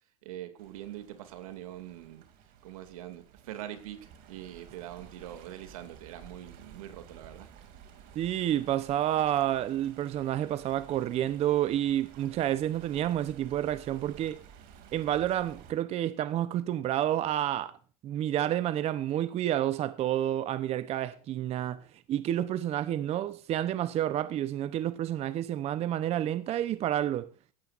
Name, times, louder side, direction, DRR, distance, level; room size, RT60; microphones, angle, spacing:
voice 1, 0.2-2.3 2.6-7.5, right 12 dB, 80° right, 2.5 m, -43 dB
Stream, 0.6-15.7, right 8 dB, 55° right, 2.7 m, -53 dB
voice 2, 8.2-14.4 14.9-17.8 18.0-21.8 22.1-27.3, right 12 dB, 35° right, 0.8 m, -29 dB
16.5 x 13.5 x 2.6 m
supercardioid pair, 120°, 18 cm